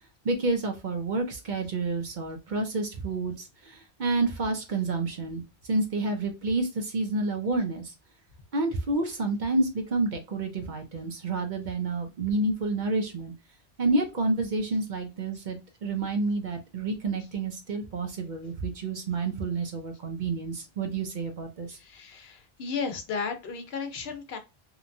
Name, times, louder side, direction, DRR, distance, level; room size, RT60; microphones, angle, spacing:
voice 1, 0.2-5.4 5.7-7.8 8.5-13.3 13.8-21.8, right 3 dB, 55° right, 4 dB, 0.6 m, -29 dB
voice 2, 21.7-24.4, left 5 dB, 75° left, 6 dB, 0.9 m, -34 dB
2.8 x 2.2 x 2.5 m, 0.27 s
omnidirectional pair, 1.1 m